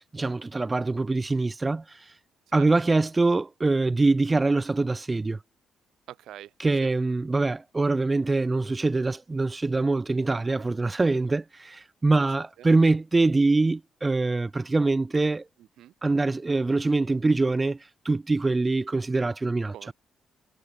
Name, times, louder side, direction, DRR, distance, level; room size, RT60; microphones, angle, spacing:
voice 1, 0.0-2.1 2.5-5.4 6.6-15.5 16.0-17.8 18.0-19.7, right 3 dB, 20° right, 0.6 m, -24 dB
voice 2, 6.1-6.5 6.8-6.9 10.3-10.6 12.6-12.7 15.8-15.9 19.7-19.9, right 12 dB, 80° right, 2.0 m, -44 dB
cardioid pair, 90°, 0 cm